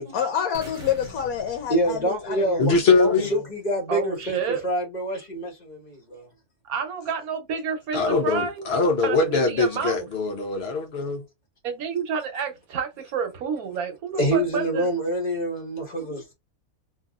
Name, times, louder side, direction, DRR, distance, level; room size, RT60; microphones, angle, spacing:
voice 1, 0.1-2.6 3.1-3.2, left 8 dB, 75° left, 1.1 m, -27 dB
sound 1, 0.5-2.6, equal, 35° right, 1.2 m, -43 dB
voice 2, 1.7-6.3 14.2-16.3, right 1 dB, 30° left, 1.3 m, -27 dB
voice 3, 2.6-3.3 7.9-11.2, left 4 dB, 50° left, 0.9 m, -22 dB
voice 4, 3.9-4.6 6.6-8.7 9.0-10.1 11.6-14.9, right 6 dB, 70° right, 1.2 m, -29 dB
2.9 x 2.6 x 2.3 m
omnidirectional pair, 1.6 m